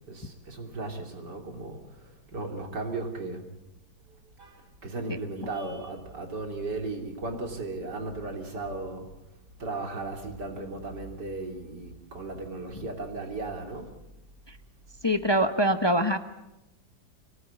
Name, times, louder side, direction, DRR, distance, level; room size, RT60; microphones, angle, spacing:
voice 1, 0.1-3.4 4.4-9.1 9.6-13.9, right 2 dB, 80° right, 3 dB, 3.7 m, -36 dB
voice 2, 15.0-16.2, equal, 20° left, 8 dB, 0.8 m, -23 dB
24.5 x 18.0 x 8.7 m, 0.95 s
omnidirectional pair, 1.8 m